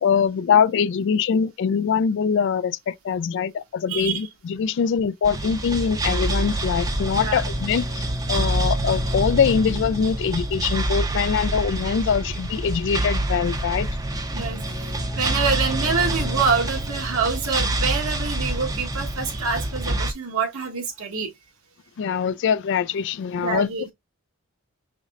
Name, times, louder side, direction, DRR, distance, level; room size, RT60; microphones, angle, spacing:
voice 1, 0.0-13.9 22.0-23.7, left 7 dB, 55° left, 0.3 m, -23 dB
voice 2, 3.9-4.3 7.1-7.4 14.3-21.3 23.3-23.9, right 5 dB, 80° right, 1.2 m, -26 dB
sound 1, 5.2-20.1, right 1 dB, 15° right, 0.5 m, -26 dB
5.1 x 3.1 x 2.4 m
head